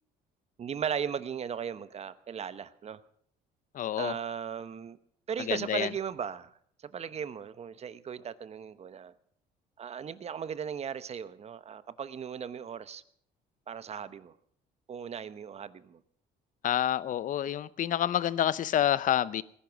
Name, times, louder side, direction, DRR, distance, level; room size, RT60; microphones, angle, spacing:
voice 1, 0.6-3.0 4.0-5.0 5.3-6.5 6.8-9.1 9.8-13.0 13.7-14.3 14.9-16.0, right 7 dB, 40° right, 14 dB, 0.9 m, -37 dB
voice 2, 3.7-4.1 5.5-5.9 16.6-19.4, left 11 dB, 50° left, 19 dB, 0.7 m, -28 dB
19.0 x 11.0 x 6.2 m, 0.64 s
cardioid pair, 110°, 17 cm